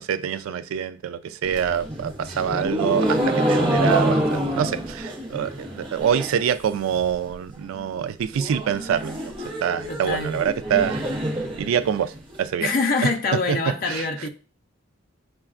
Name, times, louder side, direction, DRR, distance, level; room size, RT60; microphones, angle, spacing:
voice 1, 0.0-9.3 9.6-11.0 11.6-12.7 13.0-14.3, right 8 dB, 80° right, 0.3 m, -25 dB
sound 1, 1.4-6.5 6.8-7.3 7.6-7.7 7.9-8.0 8.3-12.3, right 1 dB, 25° right, 0.7 m, -26 dB
voice 2, 9.9-10.4 12.6-14.3, left 3 dB, 45° left, 0.5 m, -25 dB
5.7 x 2.2 x 2.4 m
head